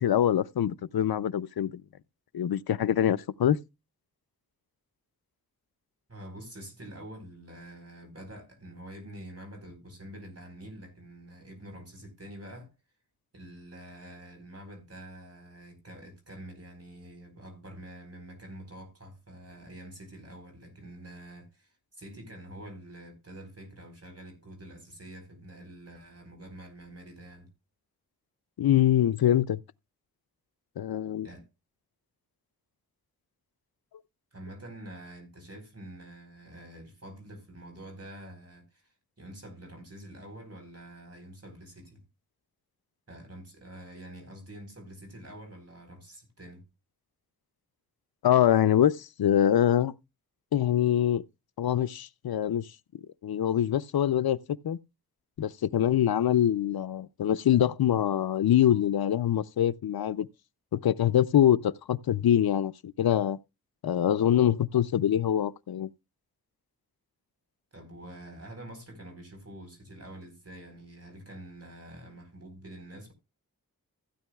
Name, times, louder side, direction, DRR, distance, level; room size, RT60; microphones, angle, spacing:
voice 1, 0.0-1.8 2.3-3.6 28.6-29.6 30.8-31.3 48.2-49.9 50.5-51.2 51.6-52.7 53.2-54.4 54.6-54.8 55.4-60.3 60.7-63.4 63.8-65.9, left 10 dB, 80° left, 0.5 m, -24 dB
voice 2, 6.1-12.7 13.3-27.5 31.2-31.5 34.3-42.0 43.1-46.7 67.7-73.1, right 1 dB, 40° right, 4.2 m, -46 dB
15.5 x 9.0 x 2.3 m
wide cardioid pair, 60°, 36 cm